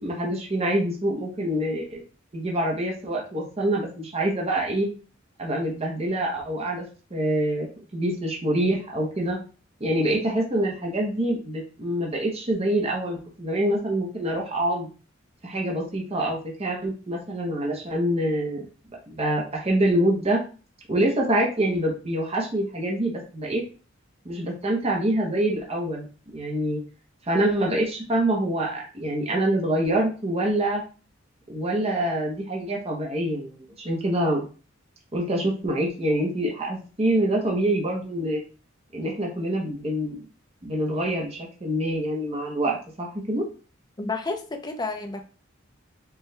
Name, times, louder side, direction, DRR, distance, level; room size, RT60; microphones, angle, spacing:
voice 1, 0.0-2.0 2.3-4.9 5.4-6.8 7.1-7.7 7.9-9.4 9.8-14.9 15.4-18.6 19.1-20.4 20.9-23.6 24.2-26.0 26.3-26.8 27.3-30.8 31.5-34.5 35.1-38.4 38.9-40.2 40.6-43.5, right 1 dB, 30° right, -1 dB, 0.8 m, -25 dB
voice 2, 44.0-45.2, left 3 dB, 20° left, 5 dB, 0.5 m, -30 dB
4.5 x 2.3 x 3.2 m, 0.37 s
head